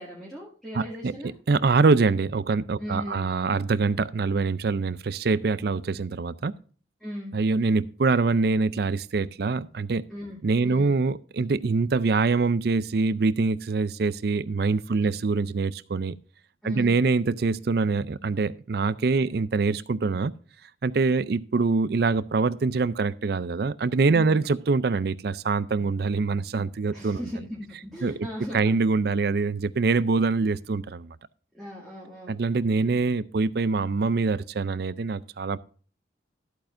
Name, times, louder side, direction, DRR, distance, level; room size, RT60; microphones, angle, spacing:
voice 1, 0.0-1.3 2.8-3.3 7.0-7.3 10.1-11.0 14.9-15.1 16.6-17.0 19.2-19.3 24.1-24.4 26.8-28.7 31.5-32.4, equal, ahead, 2.2 m, -38 dB
voice 2, 0.7-6.5 7.3-10.0 10.4-16.2 16.6-20.3 20.8-27.2 28.0-28.3 28.5-31.2 32.3-35.6, right 4 dB, 55° right, 0.4 m, -24 dB
13.5 x 8.7 x 2.6 m
head